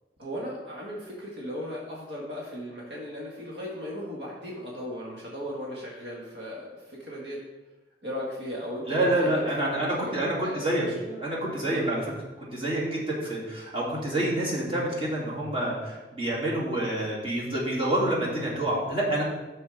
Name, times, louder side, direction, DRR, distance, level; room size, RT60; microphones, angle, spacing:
voice 1, 0.2-7.4 8.0-9.4 9.7-11.2 11.6-12.0, equal, 70° right, -4 dB, 1.7 m, -37 dB
voice 2, 8.9-10.9 11.2-12.0 12.4-19.2, right 1 dB, 30° right, -6 dB, 2.6 m, -27 dB
10.0 x 6.9 x 3.4 m, 1.1 s
head